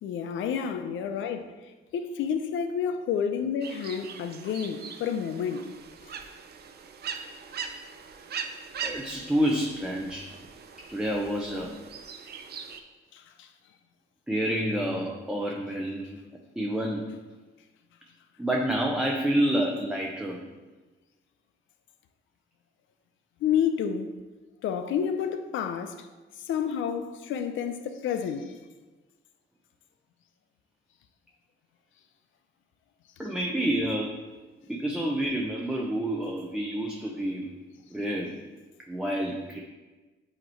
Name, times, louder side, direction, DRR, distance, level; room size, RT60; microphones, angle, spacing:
voice 1, 0.0-1.5 1.9-5.7 6.0-6.1 13.1-13.5 23.4-24.1 24.6-26.1 26.5-28.5, left 7 dB, 80° left, 0.6 m, -30 dB
sound 1, 3.6-12.8, right 6 dB, 55° right, 0.6 m, -41 dB
voice 2, 8.8-10.4 10.9-11.8 14.3-16.2 16.6-17.1 18.4-20.4 33.2-34.2 34.7-37.5 37.9-38.3 38.9-39.6, right 1 dB, 5° right, 0.7 m, -28 dB
7.9 x 2.9 x 4.4 m
cardioid pair, 90°, 20 cm